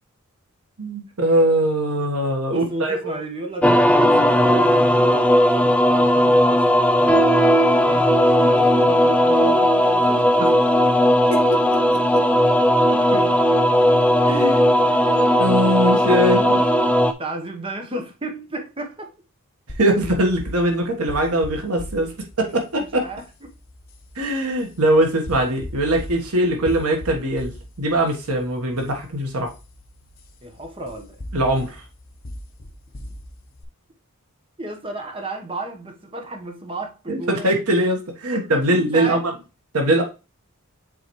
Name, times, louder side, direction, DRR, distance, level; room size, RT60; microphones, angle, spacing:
voice 1, 0.8-3.2 11.5-12.2 14.3-16.6 19.8-22.1 22.4-23.1 24.1-27.5 27.8-29.5 31.3-31.8 37.1-39.2 39.7-40.0, right 1 dB, 85° right, 1.4 m, -21 dB
voice 2, 2.5-7.3 7.8-10.6 13.1-13.6 14.2-14.6 17.2-19.1 23.0-23.2 30.4-31.2 34.6-37.6 38.3-39.3, right 1 dB, 25° right, 1.1 m, -33 dB
sound 1, 3.6-17.1, equal, 5° left, 0.4 m, -17 dB
sound 2, 19.7-33.6, left 1 dB, 40° left, 1.1 m, -39 dB
7.5 x 4.0 x 3.1 m
head